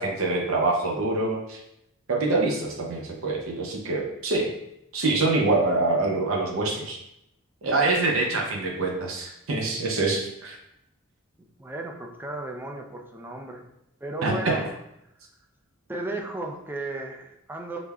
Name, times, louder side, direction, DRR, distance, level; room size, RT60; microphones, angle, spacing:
voice 1, 0.0-1.6 2.1-4.5 4.9-7.0 7.6-10.6 14.2-14.6, right 2 dB, 70° right, 0 dB, 0.6 m, -25 dB
voice 2, 11.6-13.7 14.0-14.8 15.9-17.8, right 2 dB, 10° right, 1 dB, 0.3 m, -35 dB
5.0 x 2.1 x 2.3 m, 0.81 s
head